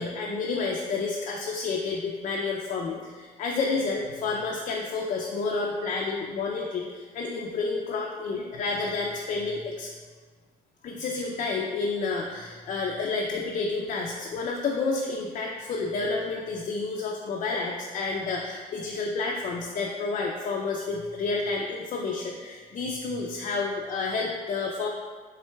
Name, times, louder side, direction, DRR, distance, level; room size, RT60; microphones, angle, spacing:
voice 1, 0.0-9.9 10.8-24.9, left 4 dB, 45° left, -1 dB, 0.4 m, -30 dB
4.3 x 3.6 x 2.2 m, 1.5 s
cardioid pair, 110°, 17 cm